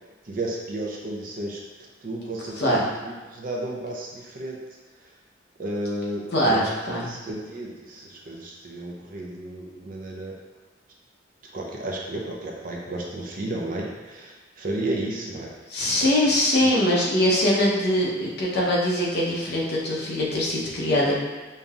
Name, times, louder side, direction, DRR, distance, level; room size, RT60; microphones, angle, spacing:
voice 1, 0.3-1.6 2.0-4.6 5.6-6.6 7.1-10.3 11.5-15.5 16.0-16.2 16.6-16.7, right 1 dB, 45° right, -1 dB, 0.6 m, -33 dB
voice 2, 6.3-7.1 15.7-21.2, left 1 dB, 55° left, -5 dB, 0.9 m, -22 dB
5.2 x 2.8 x 2.4 m, 1.3 s
head